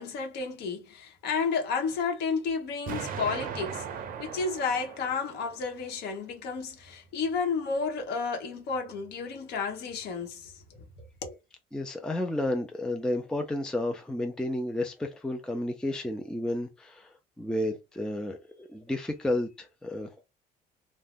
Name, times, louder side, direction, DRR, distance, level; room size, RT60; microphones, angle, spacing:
voice 1, 0.0-3.9 4.2-10.6 11.0-11.3, left 5 dB, 75° left, 1.0 m, -32 dB
Explosion, 2.9-5.9, right 7 dB, 55° right, 0.6 m, -38 dB
voice 2, 11.7-20.2, left 1 dB, 5° left, 0.4 m, -32 dB
2.5 x 2.1 x 3.4 m
cardioid pair, 110°, 17 cm